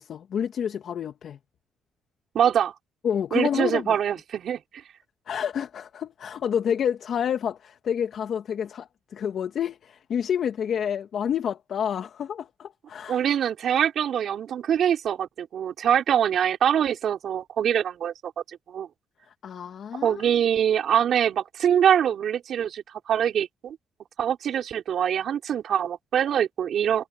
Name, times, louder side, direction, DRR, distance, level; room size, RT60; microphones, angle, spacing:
voice 1, 0.0-1.4 3.0-3.9 5.3-13.2 19.4-20.3, left 8 dB, 60° left, 2.2 m, -29 dB
voice 2, 2.3-2.7 3.3-4.6 13.1-18.3 18.7-18.9 20.0-23.8 24.2-27.1, right 9 dB, 65° right, 5.2 m, -24 dB
cardioid pair, 90°, 0 cm